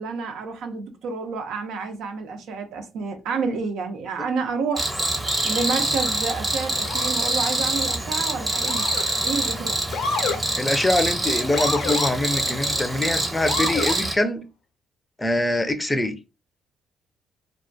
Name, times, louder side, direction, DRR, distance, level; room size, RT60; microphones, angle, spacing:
voice 1, 0.0-4.9 5.4-8.9 9.2-9.8, right 4 dB, 85° right, 0.5 m, -29 dB
Cricket, 4.8-14.2, right 1 dB, 15° right, 0.7 m, -25 dB
Motor vehicle (road) / Siren, 6.8-7.2 8.6-9.2 9.9-10.4 11.5-12.1 13.4-14.0, left 4 dB, 75° left, 0.5 m, -28 dB
voice 2, 10.6-14.4 15.2-16.2, left 1 dB, 15° left, 0.4 m, -24 dB
2.3 x 2.1 x 2.5 m
cardioid pair, 90°, 0 cm